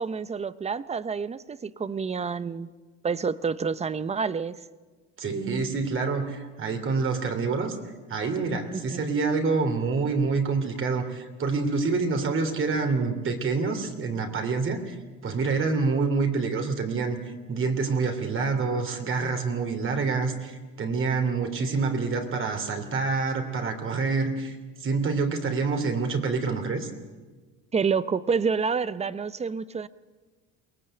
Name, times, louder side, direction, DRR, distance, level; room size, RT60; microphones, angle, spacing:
voice 1, 0.0-2.7 3.0-4.6 8.7-9.0 27.7-29.9, right 5 dB, 20° right, 16 dB, 0.8 m, -28 dB
voice 2, 5.2-7.8 8.1-14.9 15.2-26.9, right 4 dB, 35° right, 6 dB, 3.2 m, -27 dB
23.0 x 19.0 x 8.9 m, 1.3 s
cardioid pair, 120°, 33 cm